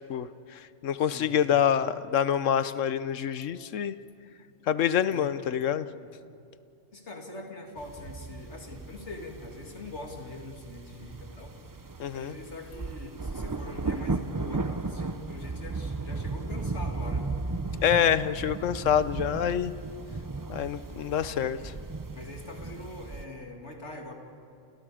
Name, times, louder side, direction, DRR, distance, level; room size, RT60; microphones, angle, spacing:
voice 1, 0.1-3.9 4.7-5.9 12.0-12.3 17.8-19.7 20.5-21.7, left 9 dB, 80° left, 14 dB, 1.2 m, -26 dB
voice 2, 1.0-1.7 5.1-5.5 6.0-6.2 6.9-11.6 12.1-17.3 21.2-21.7 22.1-24.1, left 2 dB, 65° left, 2 dB, 2.8 m, -43 dB
sound 1, 7.8-23.2, right 3 dB, 25° right, 0.5 m, -36 dB
30.0 x 29.5 x 5.0 m, 2.5 s
omnidirectional pair, 1.3 m